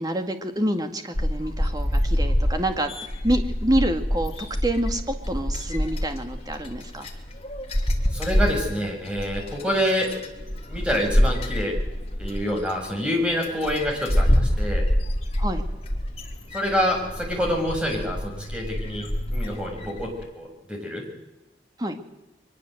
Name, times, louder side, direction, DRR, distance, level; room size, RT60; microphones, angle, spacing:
voice 1, 0.0-7.1 15.4-15.6 21.8-22.0, right 1 dB, 20° right, 6 dB, 2.1 m, -27 dB
sound 1, 1.1-20.3, equal, 35° left, 3.2 m, -26 dB
voice 2, 8.1-10.1 10.7-11.7 12.2-14.8 16.5-20.1 20.3-21.0, equal, 5° right, 1 dB, 6.5 m, -27 dB
23.0 x 21.0 x 7.9 m, 1.0 s
head